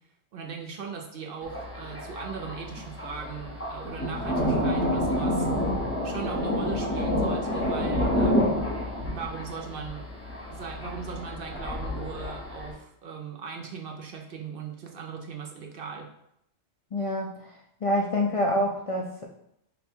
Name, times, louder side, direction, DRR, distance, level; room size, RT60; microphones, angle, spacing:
voice 1, 0.3-5.5 6.0-8.6 9.0-10.0 10.5-16.1, right 6 dB, 60° right, 1 dB, 0.8 m, -38 dB
Thunder, 1.4-12.7, left 1 dB, 15° left, 0.8 m, -29 dB
voice 2, 16.9-17.3 17.8-19.3, left 1 dB, 60° left, 0 dB, 0.3 m, -26 dB
5.3 x 2.2 x 4.3 m, 0.76 s
omnidirectional pair, 1.2 m